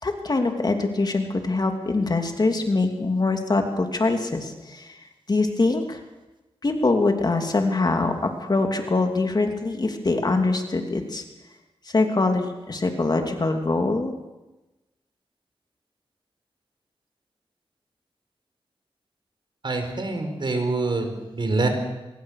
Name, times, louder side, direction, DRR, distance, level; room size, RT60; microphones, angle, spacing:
voice 1, 0.0-5.0 5.3-6.0 6.6-11.2 11.9-14.1, left 3 dB, 40° left, 4 dB, 2.9 m, -23 dB
voice 2, 19.6-21.7, right 3 dB, 50° right, 5 dB, 5.1 m, -25 dB
26.0 x 21.5 x 6.7 m, 1.0 s
wide cardioid pair, 90°, 10 cm